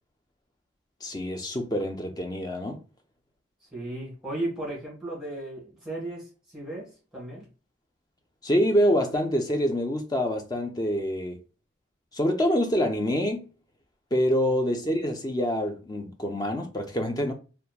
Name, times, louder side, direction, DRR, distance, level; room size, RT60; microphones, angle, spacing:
voice 1, 1.0-2.8 8.4-11.4 12.1-13.5 14.1-17.3, equal, 20° left, 0.4 m, -26 dB
voice 2, 3.6-7.5, right 1 dB, ahead, 1.3 m, -35 dB
2.9 x 2.1 x 2.3 m
head